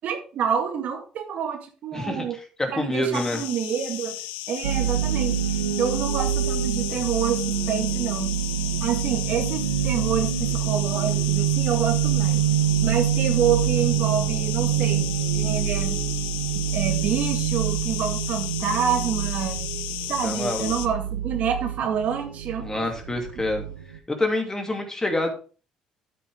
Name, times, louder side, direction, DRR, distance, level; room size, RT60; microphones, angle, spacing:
voice 1, 0.0-2.4 2.7-4.2 4.5-8.3 8.8-12.5 12.8-16.0 16.7-19.6 20.1-22.9, right 8 dB, 60° right, 6 dB, 1.7 m, -28 dB
voice 2, 1.9-2.3 2.6-3.4 20.2-20.7 22.6-23.6 24.1-25.3, left 2 dB, 20° left, 4 dB, 2.8 m, -26 dB
sound 1, 3.1-20.9, left 15 dB, 75° left, 0.7 m, -34 dB
sound 2, 4.6-24.0, right 10 dB, 90° right, 0.9 m, -26 dB
9.2 x 8.3 x 3.6 m, 0.37 s
hypercardioid pair, 55°, 3 cm